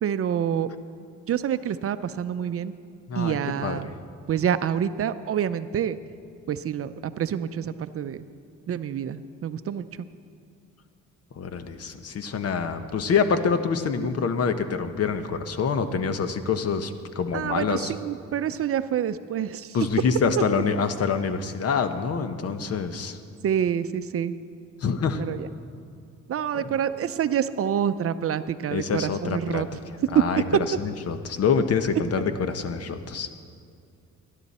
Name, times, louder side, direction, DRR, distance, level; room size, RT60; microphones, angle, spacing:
voice 1, 0.0-0.7 1.3-2.7 3.2-3.9 4.3-6.0 6.5-8.2 8.7-9.9 17.3-19.8 20.4-20.5 23.4-24.4 25.2-25.5 26.3-29.7, right 9 dB, 50° right, 12 dB, 0.5 m, -27 dB
voice 2, 3.1-3.8 11.3-17.9 19.7-23.2 24.8-25.2 26.5-26.6 28.7-29.6 30.1-30.4 30.8-33.3, left 5 dB, 55° left, 9 dB, 1.0 m, -26 dB
19.0 x 11.0 x 4.2 m, 2.4 s
cardioid pair, 90°, 30 cm